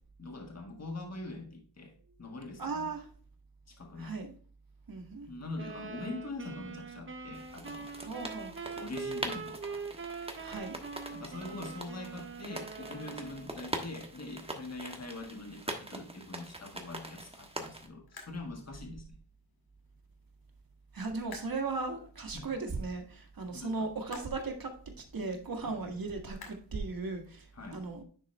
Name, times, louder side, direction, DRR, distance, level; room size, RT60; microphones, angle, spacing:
voice 1, 0.2-2.9 3.7-4.2 5.3-7.9 8.8-9.8 11.1-19.2 22.3-22.5 23.5-23.9 25.8-25.9 27.5-27.8, left 2 dB, 40° left, 1.6 m, -43 dB
voice 2, 2.6-3.1 4.0-4.3 4.9-5.3 8.0-8.6 10.4-10.8 20.9-28.0, right 3 dB, 60° right, 1.8 m, -37 dB
sound 1, 5.6-13.6, right 5 dB, 30° right, 0.7 m, -43 dB
sound 2, 7.3-17.9, right 1 dB, 15° right, 1.2 m, -43 dB
sound 3, 14.2-27.5, left 4 dB, 65° left, 2.2 m, -58 dB
10.0 x 4.1 x 3.2 m
wide cardioid pair, 75°, 40 cm